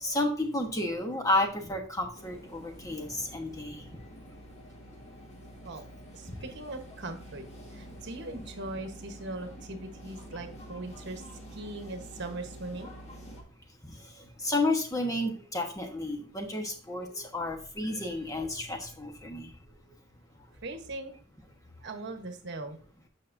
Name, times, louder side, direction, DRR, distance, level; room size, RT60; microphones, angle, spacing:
voice 1, 0.0-3.9 14.4-19.5, left 2 dB, 15° left, 2 dB, 1.2 m, -31 dB
sound 1, 2.1-13.4, equal, 35° left, 1.5 m, -47 dB
voice 2, 5.6-7.5 7.7-11.2 11.5-12.9 20.6-21.2 21.8-22.8, right 2 dB, 60° right, 6 dB, 1.1 m, -40 dB
8.4 x 6.2 x 2.6 m, 0.42 s
head